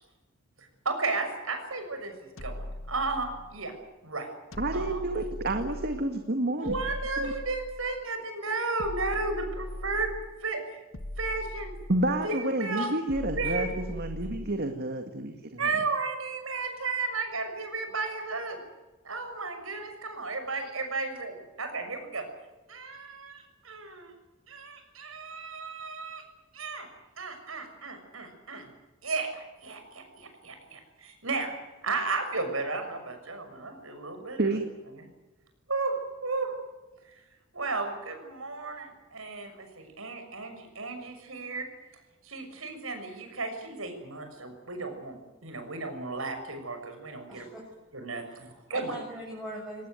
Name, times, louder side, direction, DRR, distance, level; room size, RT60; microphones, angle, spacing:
voice 1, 0.6-2.1 2.4-3.7 4.0-4.3 4.7-5.0 6.6-10.1 10.4-10.6 11.2-11.7 12.2-12.9 13.3-13.7 15.6-18.6 19.0-22.3 22.7-24.1 24.5-26.2 26.5-26.9 27.2-28.7 29.0-31.5 31.8-34.6 34.9-35.1 35.7-36.0 36.2-36.5 37.1-37.2 37.5-41.7 42.2-47.4 47.9-48.9, right 3 dB, 85° right, 6 dB, 6.4 m, -34 dB
sound 1, 2.4-3.7 4.5-6.1 6.6-8.1 8.8-10.4 10.9-12.3 13.1-14.7, left 1 dB, 85° left, 1.7 m, -39 dB
voice 2, 4.6-6.8 7.2-7.3 11.9-15.4 34.4-34.6, right 2 dB, 55° right, 6 dB, 2.1 m, -29 dB
voice 3, 47.3-47.6 48.3-49.9, equal, ahead, -4 dB, 6.4 m, -41 dB
22.5 x 19.0 x 9.4 m, 1.1 s
head